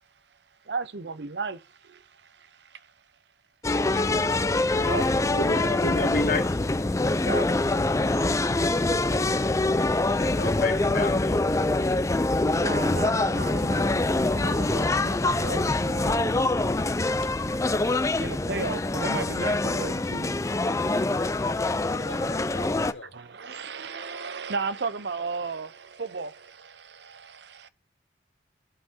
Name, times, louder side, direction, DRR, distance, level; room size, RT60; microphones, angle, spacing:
voice 1, 0.6-2.9 4.8-5.8 7.2-7.7 8.9-9.0 12.5-16.3 18.2-20.3 23.1-27.7, right 4 dB, 70° right, 0.7 m, -35 dB
sound 1, 3.6-22.9, left 2 dB, 15° left, 0.4 m, -25 dB
voice 2, 5.4-6.6 10.2-11.3 22.1-22.3, left 2 dB, 50° left, 1.1 m, -30 dB
voice 3, 22.0-23.1, left 2 dB, 90° left, 1.1 m, -42 dB
17.0 x 5.7 x 2.7 m
head